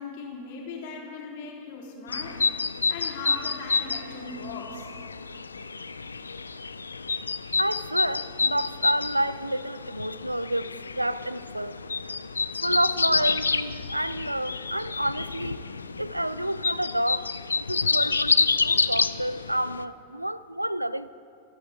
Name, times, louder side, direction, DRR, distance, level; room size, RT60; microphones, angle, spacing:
voice 1, 0.0-2.4 2.9-4.9, left 4 dB, 50° left, 3.3 m, -38 dB
sound 1, 2.1-19.8, left 4 dB, 75° left, 0.4 m, -29 dB
voice 2, 7.6-10.7 10.9-11.8 12.6-15.6 16.0-17.3 17.7-21.1, right 1 dB, 85° right, 0.3 m, -29 dB
25.5 x 9.3 x 4.6 m
figure-of-eight pair, 90°, 0 cm